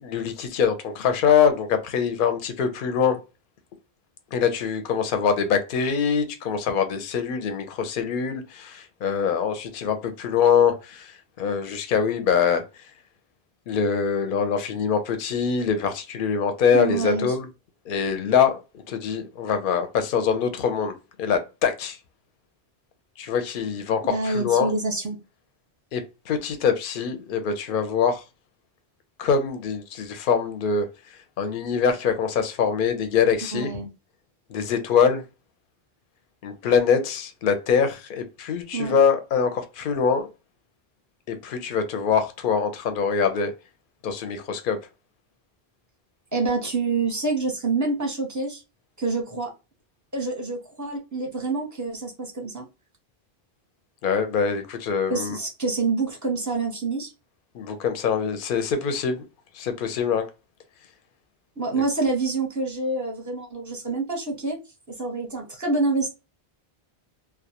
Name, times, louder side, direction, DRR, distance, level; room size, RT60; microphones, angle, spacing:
voice 1, 0.0-3.2 4.3-12.6 13.7-17.5 17.9-22.0 23.2-24.7 25.9-28.2 29.2-30.9 31.4-33.7 34.5-35.2 36.4-40.3 41.3-43.5 44.0-44.8 54.0-55.4 57.5-59.3 59.5-60.3, left 6 dB, 60° left, 0.7 m, -24 dB
voice 2, 16.7-17.3 24.0-25.2 33.5-33.9 38.7-39.0 46.3-48.6 49.0-49.5 50.1-52.7 55.1-57.1 61.6-64.6 64.9-66.1, right 3 dB, 20° right, 0.6 m, -27 dB
2.3 x 2.1 x 2.8 m
omnidirectional pair, 1.1 m